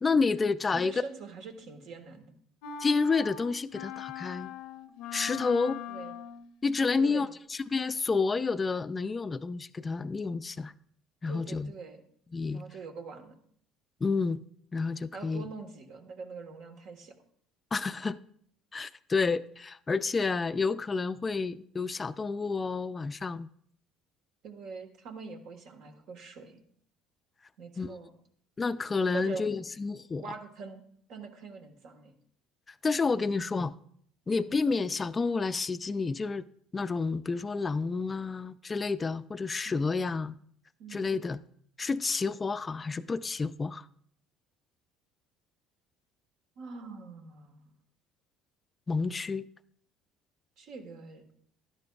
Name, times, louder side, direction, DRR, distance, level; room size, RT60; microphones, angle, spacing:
voice 1, 0.0-1.0 2.8-4.5 5.1-5.8 6.6-10.7 11.2-11.7 12.3-12.6 14.0-14.4 14.7-15.5 17.7-18.2 18.7-23.5 27.8-28.0 28.6-30.2 32.8-33.7 34.3-36.4 36.7-40.4 40.9-41.4 41.8-43.8 48.9-49.5, left 4 dB, 25° left, 0.4 m, -30 dB
voice 2, 0.7-2.3 5.9-6.1 7.0-7.3 11.3-12.0 12.5-13.4 15.1-17.1 24.4-26.6 27.6-28.1 29.1-29.5 30.2-30.8 31.1-32.1 34.3-34.6 39.6-39.9 40.8-41.1 46.6-47.7 50.6-51.2, right 4 dB, 70° right, 1.4 m, -43 dB
sound 1, 2.6-6.5, left 8 dB, 75° left, 0.7 m, -41 dB
12.0 x 10.5 x 2.4 m
supercardioid pair, 90°, 0 cm